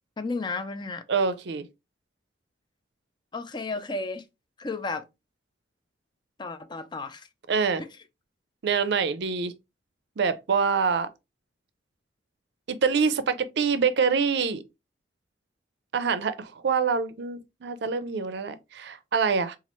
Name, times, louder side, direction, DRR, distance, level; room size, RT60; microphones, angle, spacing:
voice 1, 0.2-1.0 3.3-4.2 4.6-5.1 6.4-7.3 7.8-8.0, left 3 dB, 25° left, 0.4 m, -33 dB
voice 2, 1.1-1.6 7.5-7.8 8.6-9.5 10.2-11.1 12.7-14.6 15.9-19.6, right 5 dB, 65° right, 0.5 m, -25 dB
4.2 x 2.4 x 2.9 m
head